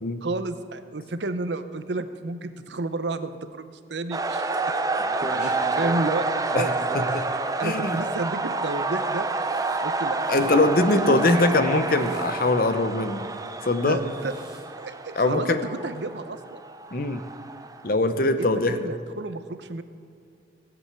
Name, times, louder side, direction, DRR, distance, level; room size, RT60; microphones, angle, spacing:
voice 1, 0.2-4.5 5.2-6.7 7.6-9.3 9.8-10.2 10.5-11.2 11.5-11.6 13.8-14.3 14.8-16.6 18.4-19.8, right 2 dB, 80° right, 11 dB, 0.8 m, -31 dB
sound 1, 4.1-17.9, right 3 dB, 20° right, 0.6 m, -29 dB
sound 2, 5.0-6.1 6.6-7.2 7.8-8.0 9.5-9.8 10.2-10.5 11.1-11.4 12.0-12.3 14.1-14.6, right 1 dB, 5° right, 1.9 m, -39 dB
voice 2, 7.6-8.0 10.3-13.3 13.6-14.0 15.2-15.6 16.9-17.2 17.8-18.9, left 2 dB, 55° left, 10 dB, 0.9 m, -22 dB
18.0 x 8.0 x 8.2 m, 2.4 s
head